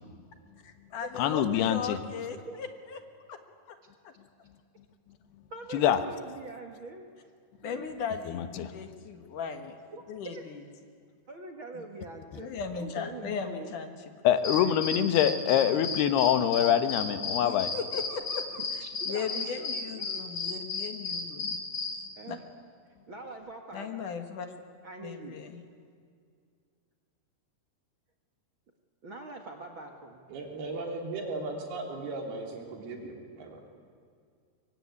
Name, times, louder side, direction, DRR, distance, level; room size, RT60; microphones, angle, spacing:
voice 1, 0.6-3.0 3.3-3.4 3.7-3.8 4.0-4.1 7.6-9.8 10.1-10.6 12.4-14.1 14.6-14.7 17.4-21.6 22.3-22.4 23.7-24.6 25.0-25.6, left 6 dB, 60° left, 7 dB, 2.8 m, -38 dB
voice 2, 1.2-2.0 5.7-6.0 8.3-8.8 14.2-17.7, left 10 dB, 90° left, 10 dB, 3.2 m, -25 dB
voice 3, 5.5-7.1 7.6-7.9 9.9-10.4 11.3-13.7 14.4-14.9 18.8-20.1 22.1-22.4 23.1-24.0 24.8-25.4 29.0-30.2, right 2 dB, 45° right, 3 dB, 1.8 m, -44 dB
sound 1, 14.4-22.0, left 4 dB, 40° left, 3.8 m, -33 dB
voice 4, 30.3-33.6, right 2 dB, 75° right, 2 dB, 5.3 m, -37 dB
24.0 x 23.0 x 9.6 m, 2.2 s
omnidirectional pair, 4.5 m